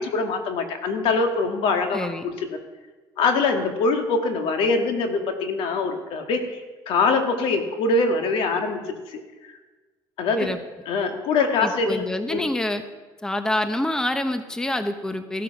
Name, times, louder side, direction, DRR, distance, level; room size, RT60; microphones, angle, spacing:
voice 1, 0.0-2.3 3.2-6.6 6.9-9.2 10.2-10.5 10.9-12.0 12.3-12.4, left 3 dB, 70° left, 4 dB, 1.9 m, -23 dB
voice 2, 1.9-2.3 10.4-10.6 11.6-12.8 13.2-15.4, left 1 dB, 5° left, 8 dB, 0.8 m, -26 dB
15.5 x 9.2 x 5.9 m, 1.3 s
cardioid pair, 115°, 9 cm